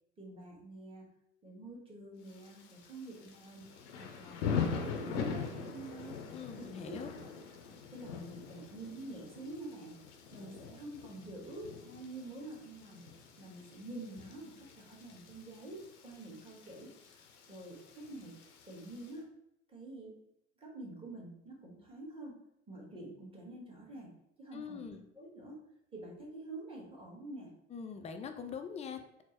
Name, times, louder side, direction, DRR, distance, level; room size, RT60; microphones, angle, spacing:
voice 1, 0.2-1.1 1.4-6.9 7.9-10.0 10.3-13.1 13.4-18.4 18.7-19.3 19.7-20.1 20.6-24.8 25.1-25.6 25.9-27.5, right 2 dB, 15° right, -3 dB, 1.3 m, -47 dB
Thunder / Rain, 2.3-19.1, left 6 dB, 80° left, 0.6 m, -43 dB
voice 2, 6.3-7.1 24.5-25.0 27.7-29.2, left 6 dB, 20° left, 6 dB, 0.4 m, -43 dB
4.3 x 2.0 x 2.9 m, 0.81 s
hypercardioid pair, 70°, 36 cm